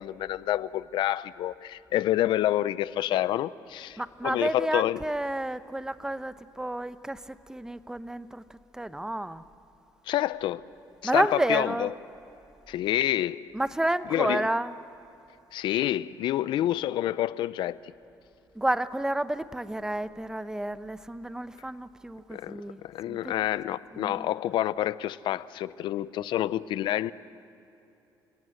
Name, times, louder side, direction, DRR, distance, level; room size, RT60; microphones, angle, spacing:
voice 1, 0.0-5.0 10.1-10.6 11.0-11.9 12.7-13.4 14.1-14.5 15.5-17.8 22.3-27.1, left 13 dB, 75° left, 0.6 m, -28 dB
voice 2, 4.0-8.4 8.7-9.4 11.0-11.9 13.5-14.7 18.5-22.8 23.1-23.4 23.9-24.3, right 1 dB, 5° right, 0.8 m, -30 dB
30.0 x 18.0 x 7.9 m
cardioid pair, 100°, 8 cm